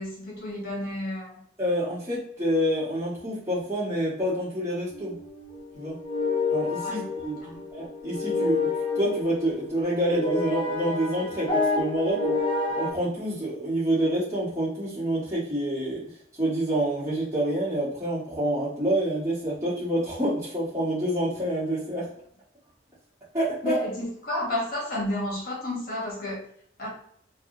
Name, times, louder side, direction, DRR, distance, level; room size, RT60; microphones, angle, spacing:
voice 1, 0.0-1.3 6.8-7.1 7.4-7.6 23.6-26.4 26.8-26.9, left 1 dB, 50° left, -3 dB, 1.1 m, -31 dB
voice 2, 1.6-5.1 5.7-5.9 6.5-7.4 7.7-8.7 8.9-12.4 12.8-16.0 16.4-22.1 23.3-23.8, right 1 dB, 15° right, -10 dB, 1.2 m, -27 dB
sound 1, 4.9-12.9, left 3 dB, 30° left, 0.6 m, -29 dB
3.4 x 2.3 x 2.7 m, 0.65 s
head